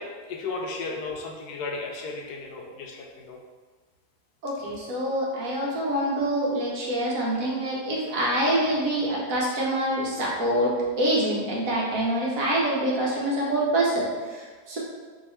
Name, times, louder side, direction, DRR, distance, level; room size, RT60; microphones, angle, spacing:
voice 1, 0.3-3.4, left 3 dB, 85° left, 0 dB, 1.2 m, -34 dB
voice 2, 4.4-14.8, right 1 dB, 60° right, -4 dB, 1.3 m, -26 dB
3.6 x 2.8 x 4.3 m, 1.4 s
omnidirectional pair, 1.7 m